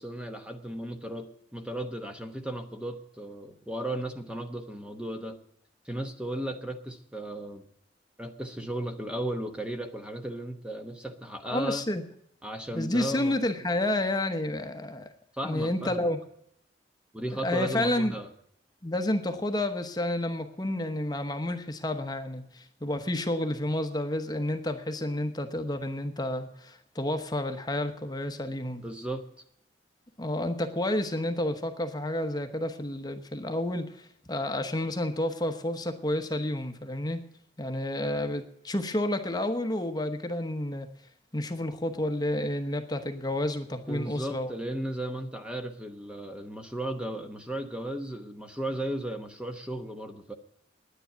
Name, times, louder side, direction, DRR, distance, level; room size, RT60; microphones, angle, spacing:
voice 1, 0.0-5.4 5.8-7.6 8.2-11.9 12.4-13.4 15.3-16.0 17.1-18.3 28.8-29.2 43.9-50.3, right 1 dB, 5° right, 5 dB, 1.0 m, -35 dB
voice 2, 11.5-12.0 12.7-15.1 15.4-16.2 17.3-18.1 18.8-28.8 30.2-37.2 37.6-40.9 41.3-44.5, left 1 dB, 20° left, 7 dB, 1.0 m, -30 dB
10.0 x 9.9 x 9.2 m, 0.72 s
head